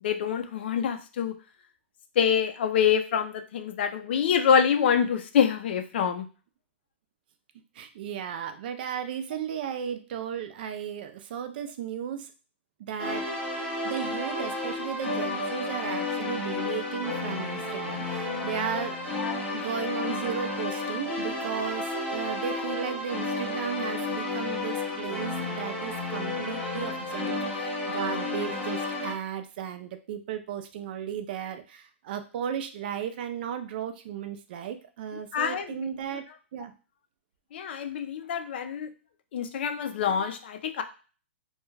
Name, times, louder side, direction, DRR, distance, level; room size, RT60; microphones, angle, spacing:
voice 1, 0.0-1.3 2.2-6.3 19.2-19.4 35.3-35.9 37.5-38.9 39.3-40.8, left 7 dB, 55° left, 8 dB, 0.4 m, -26 dB
voice 2, 7.7-12.3 12.8-13.3 13.8-19.0 19.5-36.2 36.5-36.7, right 8 dB, 50° right, 8 dB, 0.4 m, -35 dB
sound 1, 13.0-29.1, left 2 dB, 20° left, 0.9 m, -32 dB
2.3 x 2.2 x 3.1 m, 0.36 s
hypercardioid pair, 150°, 7 cm